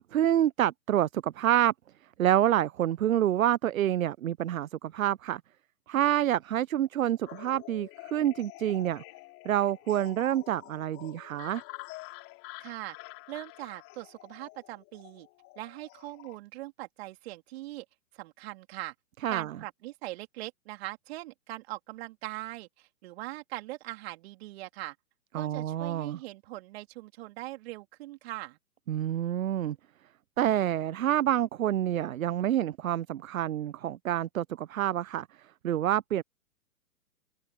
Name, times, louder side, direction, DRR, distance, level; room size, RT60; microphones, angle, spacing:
voice 1, 0.0-1.7 2.2-5.4 5.9-9.0 9.4-11.6 19.2-19.6 25.3-26.2 28.9-29.8 30.4-36.2, right 11 dB, 60° right, 0.8 m, -27 dB
sound 1, 7.3-16.4, left 23 dB, 30° left, 4.5 m, -48 dB
voice 2, 12.6-13.0 13.3-15.3 15.6-17.9 18.1-18.9 19.3-25.0 25.3-28.6, right 18 dB, 40° right, 3.5 m, -41 dB
figure-of-eight pair, 120°, 46 cm